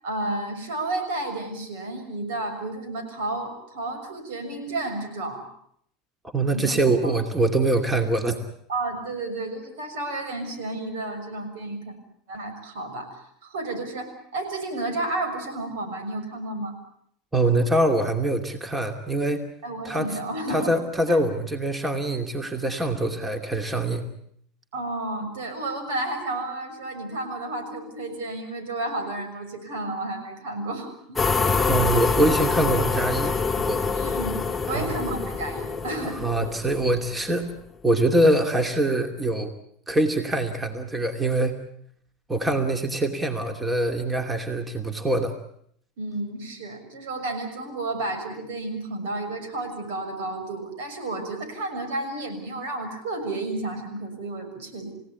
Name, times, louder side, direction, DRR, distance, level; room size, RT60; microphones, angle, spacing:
voice 1, 0.0-5.4 6.5-7.1 8.7-12.0 12.3-16.7 19.6-20.7 21.1-21.2 24.7-31.4 33.9-34.4 34.7-36.2 46.0-54.9, right 2 dB, 70° right, 8 dB, 6.5 m, -32 dB
voice 2, 6.3-8.4 17.3-19.4 19.8-20.2 20.5-24.1 31.6-33.8 34.7-34.9 36.0-37.4 37.8-39.5 39.9-41.6 42.3-45.3, right 1 dB, 15° right, 6 dB, 2.7 m, -24 dB
sound 1, 31.2-37.4, left 4 dB, 10° left, 1.9 m, -26 dB
29.0 x 17.0 x 8.5 m, 0.68 s
hypercardioid pair, 90°, 0 cm